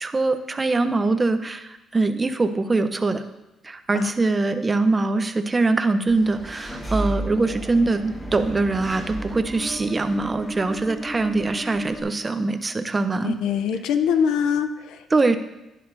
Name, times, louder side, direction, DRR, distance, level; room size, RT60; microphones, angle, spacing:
voice 1, 0.0-3.2 3.6-13.4 15.1-15.4, right 3 dB, 25° right, 9 dB, 0.7 m, -23 dB
Engine / Mechanisms, 6.1-12.0, right 1 dB, 15° left, 2.8 m, -33 dB
voice 2, 13.2-15.0, left 7 dB, 90° left, 9 dB, 0.6 m, -23 dB
11.0 x 10.0 x 2.7 m, 0.94 s
cardioid pair, 90°, 0 cm